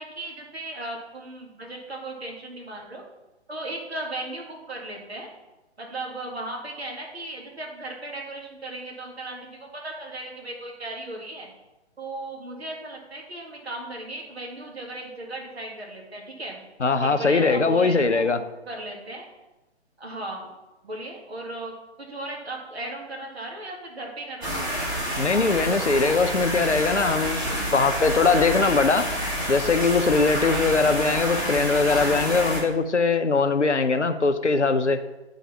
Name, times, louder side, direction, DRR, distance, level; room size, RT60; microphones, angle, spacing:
voice 1, 0.0-3.0 3.5-5.3 5.8-11.5 12.0-16.6 17.0-18.3 18.7-19.3 20.0-20.5 20.8-21.7 22.0-24.9 30.7-31.0, right 2 dB, 65° right, 0 dB, 2.2 m, -36 dB
voice 2, 16.8-18.4 25.1-27.4 27.7-29.1 29.5-35.0, left 4 dB, 85° left, 8 dB, 0.8 m, -21 dB
sound 1, 24.4-32.6, equal, 10° right, 1.3 m, -28 dB
10.5 x 4.0 x 5.4 m, 1.1 s
figure-of-eight pair, 135°, 34 cm